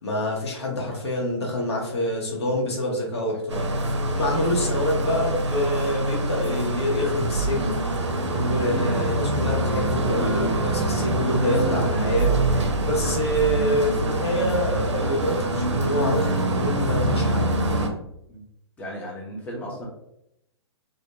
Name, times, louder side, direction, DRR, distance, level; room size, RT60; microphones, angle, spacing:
voice 1, 0.0-3.7 4.1-7.7 8.3-12.3 12.8-17.5, left 1 dB, 65° left, -2 dB, 0.9 m, -26 dB
Telephone, 2.0-2.3 2.6-2.9 3.2-3.5 3.8-4.1 4.4-4.7 5.0-5.3 5.6-5.9 6.2-6.5 6.8-7.1 7.4-7.7 8.0-8.3 8.6-8.9 9.2-9.5 9.8-10.1 10.4-10.7 11.0-11.3 11.6-11.9 12.2-12.5 12.8-13.1, left 5 dB, 35° right, 0.6 m, -41 dB
sound 1, 3.5-17.9, right 1 dB, 80° right, 0.4 m, -24 dB
voice 2, 18.8-19.9, equal, 10° left, -4 dB, 0.5 m, -35 dB
2.2 x 2.1 x 2.8 m, 0.80 s
figure-of-eight pair, 115°, 15 cm